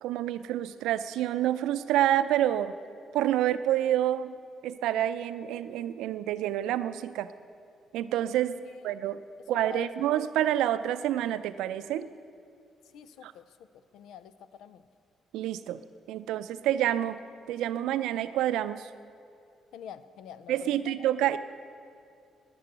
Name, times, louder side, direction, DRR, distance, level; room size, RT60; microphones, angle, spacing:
voice 1, 0.0-2.7 3.1-4.3 4.6-7.3 7.9-8.5 8.8-9.2 9.5-12.1 13.2-13.3 15.3-15.8 16.1-17.2 17.5-18.9 20.5-21.4, right 12 dB, 80° right, 12 dB, 0.5 m, -28 dB
voice 2, 8.6-9.9 12.9-13.6 13.9-14.9 19.7-21.0, left 9 dB, 75° left, 14 dB, 0.5 m, -47 dB
11.0 x 11.0 x 7.9 m, 2.4 s
hypercardioid pair, 55°, 0 cm